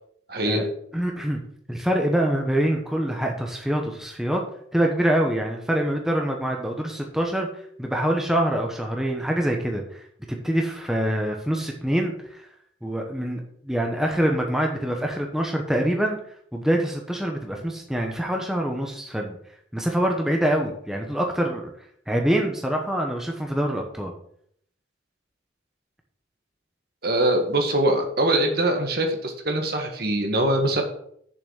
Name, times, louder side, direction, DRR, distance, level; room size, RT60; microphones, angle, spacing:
voice 1, 0.3-0.6 27.0-30.8, right 1 dB, 50° right, 3 dB, 1.6 m, -23 dB
voice 2, 0.9-1.4 1.7-4.4 4.7-7.5 7.8-12.5 12.8-16.2 16.5-19.4 19.7-21.7 22.1-24.1, right 1 dB, ahead, 1 dB, 1.0 m, -25 dB
7.1 x 6.0 x 6.3 m, 0.66 s
head